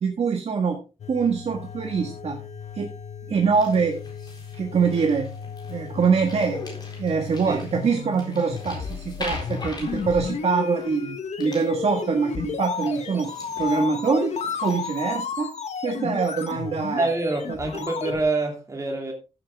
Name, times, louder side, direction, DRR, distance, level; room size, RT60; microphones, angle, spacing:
voice 1, 0.0-0.8 1.1-2.4 2.7-2.9 3.3-4.0 4.5-5.3 5.7-6.6 7.0-13.3 13.6-14.4 14.6-15.5 15.8-17.1 17.5-17.6, right 5 dB, 65° right, 3 dB, 1.6 m, -24 dB
sound 1, 1.0-18.2, left 6 dB, 85° left, 1.2 m, -33 dB
sound 2, 3.5-11.1 11.4-12.0 12.3-12.4 12.7-15.0, left 2 dB, 40° left, 4.1 m, -41 dB
voice 2, 17.0-19.1, right 2 dB, 30° right, 1 dB, 2.8 m, -26 dB
14.5 x 7.7 x 3.5 m, 0.30 s
wide cardioid pair, 180°, 11 cm